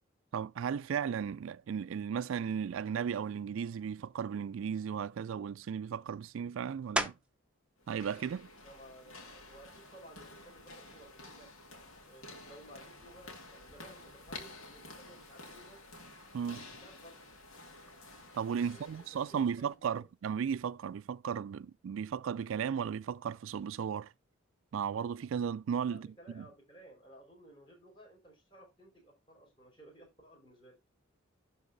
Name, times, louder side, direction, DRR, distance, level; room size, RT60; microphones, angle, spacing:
voice 1, 0.3-7.1 7.9-8.5 16.3-16.6 18.3-24.1 24.7-26.5, right 7 dB, 75° right, 0.3 m, -35 dB
sound 1, 7.0-7.5 8.1-12.5 13.0-18.2 18.5-24.1, right 2 dB, 5° right, 0.7 m, -45 dB
sound 2, 7.8-19.7, left 2 dB, 85° left, 2.4 m, -51 dB
voice 2, 8.6-11.5 12.1-15.8 16.8-17.2 18.6-19.0 19.3-20.1 25.9-30.8, right 1 dB, 25° left, 4.6 m, -56 dB
11.5 x 4.1 x 4.0 m
head